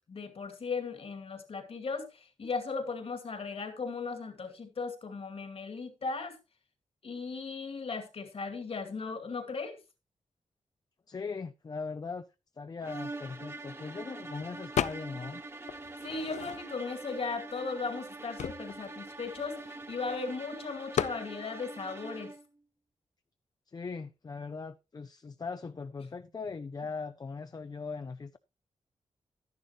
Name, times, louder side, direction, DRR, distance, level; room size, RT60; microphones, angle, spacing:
voice 1, 0.1-6.4 7.0-9.8 16.0-22.3, left 4 dB, 55° left, 2.3 m, -37 dB
voice 2, 11.1-12.3 12.6-15.4 23.7-28.4, left 4 dB, 35° left, 0.5 m, -40 dB
sound 1, 12.8-22.5, right 2 dB, 20° right, 1.3 m, -44 dB
sound 2, 14.8-15.3 15.7-16.9 17.6-17.7 17.9-20.1 20.9-21.2, left 8 dB, 80° left, 0.5 m, -34 dB
12.0 x 10.5 x 3.0 m
wide cardioid pair, 120°, 12 cm